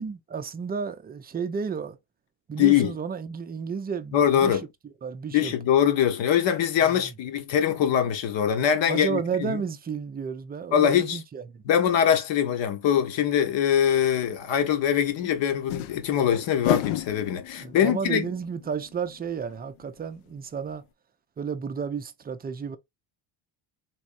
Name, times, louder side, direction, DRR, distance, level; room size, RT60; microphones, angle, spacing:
voice 1, 0.0-2.0 2.5-4.6 5.0-5.5 6.8-7.1 8.9-11.6 17.6-20.8 21.4-22.8, right 6 dB, 20° right, 0.4 m, -32 dB
voice 2, 2.6-2.9 4.1-4.7 5.3-9.6 10.7-11.2 11.6-18.3, left 9 dB, 60° left, 1.1 m, -23 dB
sound 1, 14.1-14.2 15.5-20.1 20.3-20.4 20.7-20.8, left 14 dB, 75° left, 0.6 m, -33 dB
3.6 x 3.0 x 2.6 m
cardioid pair, 100°, 49 cm